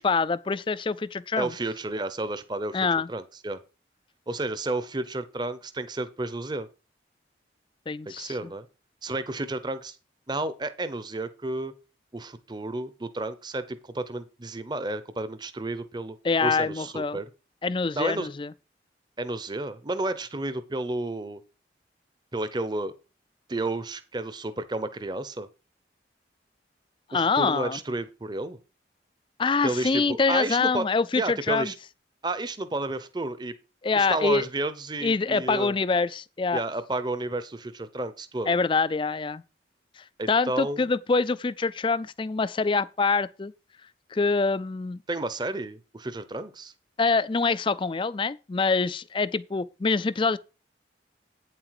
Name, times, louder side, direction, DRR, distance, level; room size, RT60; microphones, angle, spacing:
voice 1, 0.0-1.5 2.7-3.1 7.9-8.5 16.2-17.2 17.6-18.5 27.1-27.8 29.4-31.7 33.8-34.4 35.0-36.6 38.5-39.4 40.0-43.5 44.1-45.0 47.0-50.4, left 4 dB, 25° left, 0.4 m, -25 dB
voice 2, 1.4-2.8 3.1-3.6 4.3-6.7 8.1-8.7 9.0-10.0 10.3-11.7 12.1-16.2 16.4-17.3 17.9-18.3 19.2-21.4 22.3-22.9 23.5-25.5 27.1-28.6 29.6-30.8 31.2-31.7 32.2-33.5 33.9-35.7 36.5-38.6 40.2-40.9 45.1-46.7, right 2 dB, 25° right, 0.8 m, -31 dB
9.0 x 7.6 x 4.8 m
head